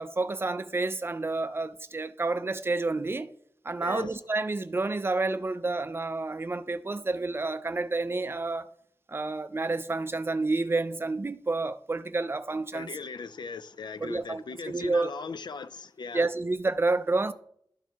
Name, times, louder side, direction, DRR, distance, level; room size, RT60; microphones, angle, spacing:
voice 1, 0.0-3.3 3.6-8.7 9.1-12.9 14.0-15.1 16.1-17.3, right 3 dB, 30° right, 0.4 m, -29 dB
voice 2, 3.8-4.1 12.7-16.3, left 5 dB, 85° left, 0.4 m, -38 dB
12.0 x 4.5 x 3.5 m
wide cardioid pair, 90°, 7 cm